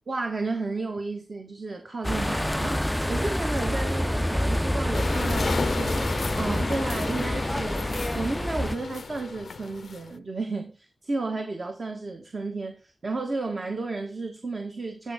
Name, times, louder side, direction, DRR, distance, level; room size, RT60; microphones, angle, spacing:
voice 1, 0.1-15.1, right 3 dB, 50° right, 1.4 m, -33 dB
sound 1, 2.0-8.8, left 1 dB, 10° left, 0.3 m, -27 dB
sound 2, 4.9-10.1, left 5 dB, 70° left, 0.5 m, -33 dB
13.0 x 4.4 x 3.6 m
cardioid pair, 65°, 0 cm